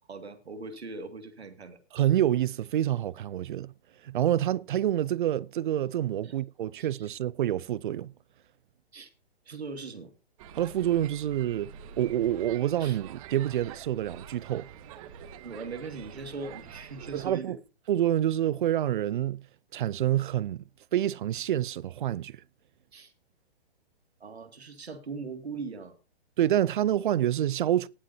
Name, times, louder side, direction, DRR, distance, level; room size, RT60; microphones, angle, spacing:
voice 1, 0.1-1.8 6.2-6.4 6.8-7.2 8.9-9.1 9.5-10.1 12.8-13.0 15.4-17.6 22.9-23.1 24.2-26.0, right 4 dB, 80° right, 2.2 m, -40 dB
voice 2, 1.9-3.7 4.0-8.1 10.5-14.7 17.1-17.6 17.9-19.4 19.7-20.6 20.9-22.4 26.4-27.9, right 12 dB, 50° right, 0.6 m, -27 dB
sound 1, 10.4-17.3, right 8 dB, 35° right, 1.1 m, -46 dB
18.5 x 7.5 x 2.8 m
figure-of-eight pair, 130°, 32 cm